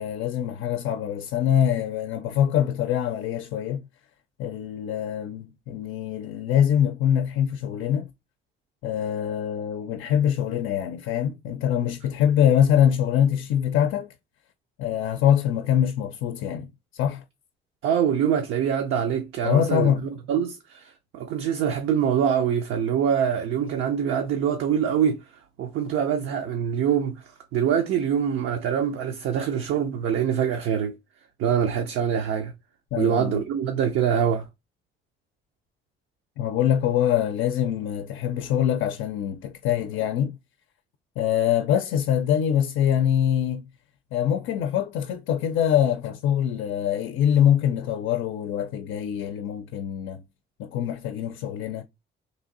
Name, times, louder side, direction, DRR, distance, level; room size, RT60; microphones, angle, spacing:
voice 1, 0.0-3.9 4.4-8.1 8.8-14.1 14.8-17.2 19.4-20.1 32.9-33.4 36.4-40.4 41.2-43.6 44.1-50.2 50.6-51.8, left 9 dB, 85° left, 0.4 m, -24 dB
voice 2, 17.8-19.9 20.3-25.2 25.6-27.2 27.5-30.9 31.4-32.5 33.0-34.5, right 8 dB, 85° right, 0.5 m, -24 dB
3.1 x 2.6 x 3.8 m
cardioid pair, 90°, 20 cm